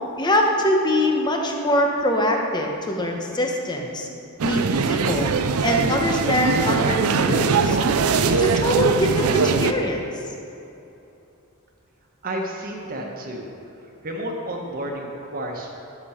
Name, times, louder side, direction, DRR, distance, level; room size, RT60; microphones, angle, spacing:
voice 1, 0.2-4.1 4.4-5.3 5.6-7.8 8.3-10.0, left 1 dB, 20° left, 1 dB, 1.0 m, -23 dB
sound 1, 4.4-9.7, right 5 dB, 85° right, 0.5 m, -21 dB
voice 2, 12.2-13.5 13.8-15.7, right 1 dB, 40° right, 0 dB, 1.4 m, -31 dB
11.5 x 7.3 x 5.0 m, 2.8 s
head